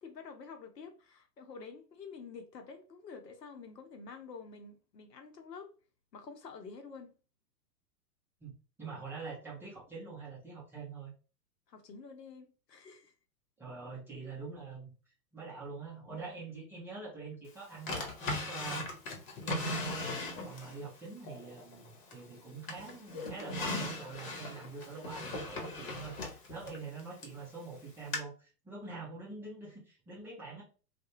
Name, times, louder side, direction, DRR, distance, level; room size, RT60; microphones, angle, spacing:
voice 1, 0.0-5.7 6.1-7.1 11.7-13.1, left 5 dB, 75° left, 0.8 m, -48 dB
voice 2, 8.8-11.1 13.6-14.9 15.3-18.9 19.4-20.1 20.4-30.6, right 4 dB, 5° right, 0.5 m, -45 dB
Drawer open or close, 17.9-20.8 21.3-22.3 22.7-27.4 28.1-28.2, left 2 dB, 55° left, 1.0 m, -38 dB
2.3 x 2.2 x 3.0 m
figure-of-eight pair, 105°, 50 cm